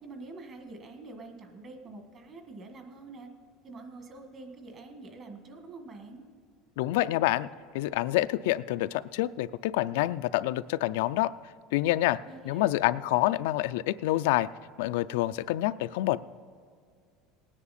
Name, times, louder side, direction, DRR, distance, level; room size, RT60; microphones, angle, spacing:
voice 1, 0.0-3.3 3.6-6.2 12.3-12.7, right 3 dB, 35° right, 5 dB, 1.5 m, -46 dB
voice 2, 6.8-7.5 7.7-11.3 11.7-12.2 12.4-14.5 14.8-16.2, left 16 dB, 90° left, 13 dB, 0.3 m, -27 dB
18.5 x 9.8 x 4.2 m, 2.2 s
cardioid pair, 160°, 0 cm